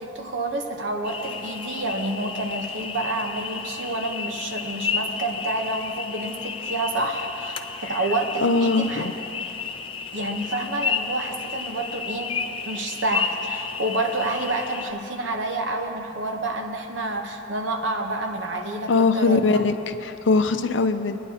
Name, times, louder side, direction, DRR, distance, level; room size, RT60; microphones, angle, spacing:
voice 1, 0.0-9.4 10.1-19.6, right 2 dB, 75° right, 3 dB, 1.0 m, -29 dB
sound 1, 1.0-14.9, left 5 dB, 30° left, 0.5 m, -32 dB
voice 2, 8.4-9.1 18.9-21.2, left 4 dB, 75° left, 9 dB, 0.6 m, -21 dB
23.5 x 10.0 x 2.8 m, 2.9 s
head